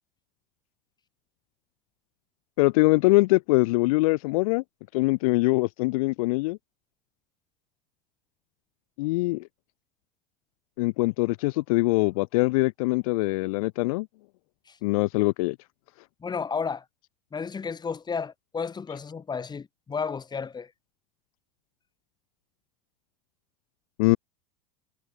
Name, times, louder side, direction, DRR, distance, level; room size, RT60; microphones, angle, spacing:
voice 1, 2.6-4.6 4.9-6.6 9.0-9.4 10.8-14.1 14.8-15.6 24.0-24.2, left 23 dB, 65° left, 0.5 m, -23 dB
voice 2, 16.2-16.8 17.3-20.7, left 5 dB, 20° left, 2.6 m, -32 dB
hypercardioid pair, 90°, 19 cm